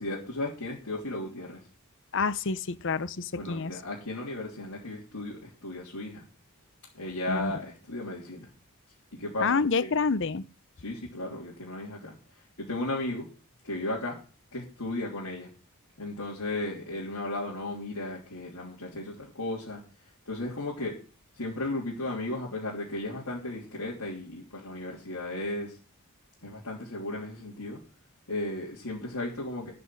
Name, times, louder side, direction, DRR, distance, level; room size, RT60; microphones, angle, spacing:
voice 1, 0.0-1.6 3.4-6.2 6.9-8.5 9.1-9.9 10.8-12.2 12.6-13.3 13.6-14.2 14.5-15.5 16.0-19.8 20.3-20.9 21.4-25.8 26.4-27.8 28.3-29.7, left 2 dB, 90° left, -5 dB, 3.3 m, -35 dB
voice 2, 2.1-3.7 7.3-7.5 9.4-10.4, left 4 dB, 55° left, 15 dB, 0.7 m, -28 dB
12.5 x 6.0 x 7.7 m, 0.37 s
head